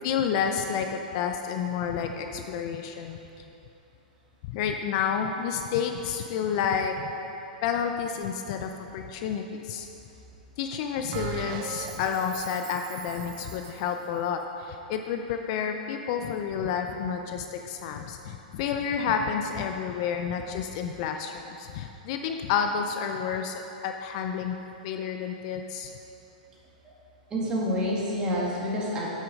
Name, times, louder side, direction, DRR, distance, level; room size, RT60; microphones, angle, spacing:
voice 1, 0.0-3.2 4.4-7.1 7.6-9.9 10.6-24.6 24.8-25.9, left 7 dB, 45° left, 5 dB, 0.5 m, -30 dB
Bell, 11.1-13.9, right 9 dB, 40° right, 0.5 m, -39 dB
voice 2, 27.3-29.1, equal, 20° right, -5 dB, 2.1 m, -29 dB
8.2 x 6.4 x 5.3 m, 2.9 s
hypercardioid pair, 135°, 5 cm